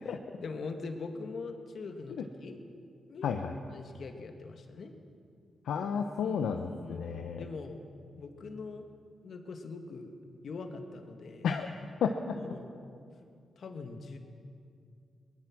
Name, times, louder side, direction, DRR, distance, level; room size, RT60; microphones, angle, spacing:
voice 1, 0.0-2.6 3.1-3.3 3.7-4.9 6.2-7.0 7.4-7.8 8.2-8.9 9.2-10.1 10.4-11.5 12.3-12.7 13.6-14.2, left 4 dB, 70° left, 5 dB, 2.1 m, -42 dB
voice 2, 3.2-3.5 5.7-7.4 11.4-11.7 12.0-12.3, left 6 dB, 85° left, 4 dB, 0.9 m, -32 dB
23.5 x 18.5 x 6.2 m, 2.4 s
supercardioid pair, 50°, 0 cm